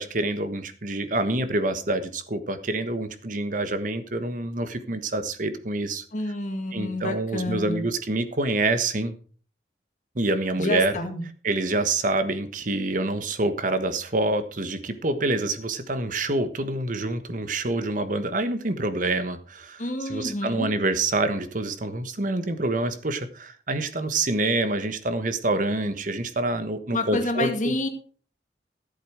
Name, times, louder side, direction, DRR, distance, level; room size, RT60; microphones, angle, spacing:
voice 1, 0.0-6.0 6.7-9.1 10.1-11.0 11.4-27.7, right 2 dB, 50° right, 10 dB, 1.3 m, -27 dB
voice 2, 6.1-7.8 10.6-11.2 19.8-20.7 26.9-27.9, left 2 dB, 45° left, 5 dB, 2.0 m, -28 dB
14.0 x 8.1 x 4.9 m, 0.43 s
head